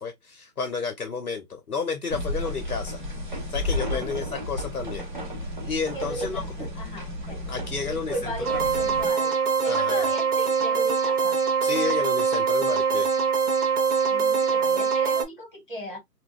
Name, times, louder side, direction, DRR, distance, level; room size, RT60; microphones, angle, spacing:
voice 1, 0.0-3.0 3.5-5.1 5.6-6.4 7.5-8.3 9.6-10.0 11.6-13.1, left 5 dB, 60° left, 0.8 m, -31 dB
sound 1, 2.1-9.1, left 1 dB, 30° right, 0.9 m, -33 dB
voice 2, 3.9-4.3 5.9-9.4 9.6-11.4 14.1-16.0, equal, 30° left, 1.3 m, -36 dB
sound 2, 8.4-15.2, right 6 dB, 65° right, 0.9 m, -23 dB
3.5 x 2.3 x 2.2 m
hypercardioid pair, 180°, 48 cm